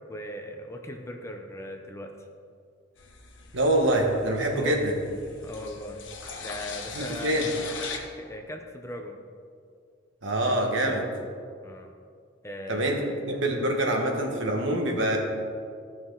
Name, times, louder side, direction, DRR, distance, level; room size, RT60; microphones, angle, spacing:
voice 1, 0.1-2.1 4.5-4.8 5.4-6.0 6.4-7.4 8.2-9.2 11.6-11.9 12.4-13.0, left 1 dB, 15° left, 3 dB, 0.8 m, -38 dB
sound 1, 3.0-8.0, left 5 dB, 75° left, 1.3 m, -40 dB
voice 2, 3.5-4.9 6.9-7.5 10.2-11.1 12.7-15.2, right 1 dB, 75° right, 1 dB, 1.5 m, -25 dB
14.5 x 6.1 x 3.9 m, 2.2 s
head